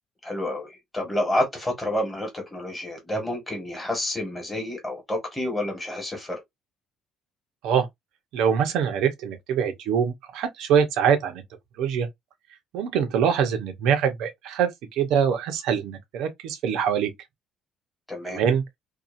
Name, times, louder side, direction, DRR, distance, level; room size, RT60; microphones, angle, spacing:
voice 1, 0.2-6.4 18.1-18.4, left 1 dB, 10° left, 1.3 m, -29 dB
voice 2, 8.3-11.4 11.8-12.1 12.7-17.1 18.3-18.6, right 7 dB, 75° right, 0.7 m, -24 dB
2.8 x 2.3 x 2.5 m
cardioid pair, 155°, 0 cm